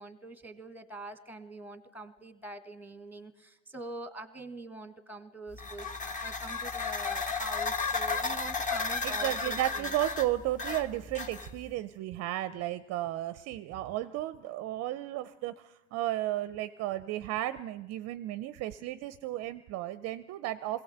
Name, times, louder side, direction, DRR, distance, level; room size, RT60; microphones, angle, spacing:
voice 1, 0.0-9.9, right 2 dB, 5° right, 11 dB, 1.6 m, -44 dB
sound 1, 5.5-11.7, left 4 dB, 20° left, 1.3 m, -34 dB
voice 2, 9.0-20.8, right 15 dB, 40° right, 14 dB, 0.6 m, -34 dB
21.0 x 17.0 x 7.9 m, 0.97 s
supercardioid pair, 125°, 40 cm